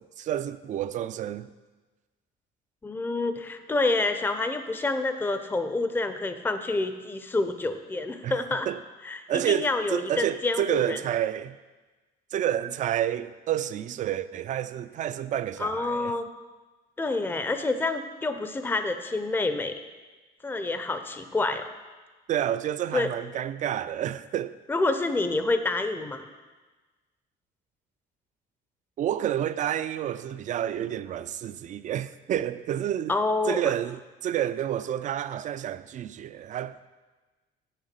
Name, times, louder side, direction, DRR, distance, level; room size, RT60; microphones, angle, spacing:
voice 1, 0.0-1.5 8.2-8.8 9.3-11.6 12.3-16.1 22.3-24.6 29.0-33.1 33.5-36.9, right 11 dB, 50° right, 0.4 m, -29 dB
voice 2, 2.8-8.7 9.0-11.0 15.6-16.3 17.0-19.8 20.4-21.7 22.9-23.1 24.7-26.3 33.1-33.7, left 2 dB, 10° left, 0.6 m, -28 dB
6.6 x 6.6 x 7.6 m
cardioid pair, 110°, 17 cm